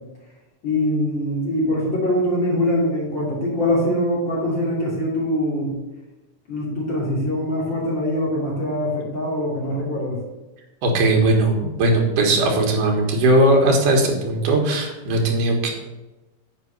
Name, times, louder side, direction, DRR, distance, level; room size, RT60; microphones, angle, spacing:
voice 1, 0.6-5.7 6.5-10.2, left 1 dB, 35° left, -6 dB, 3.1 m, -23 dB
voice 2, 10.8-15.7, right 2 dB, 75° right, 1 dB, 3.0 m, -18 dB
8.3 x 4.7 x 6.3 m, 1.1 s
omnidirectional pair, 3.9 m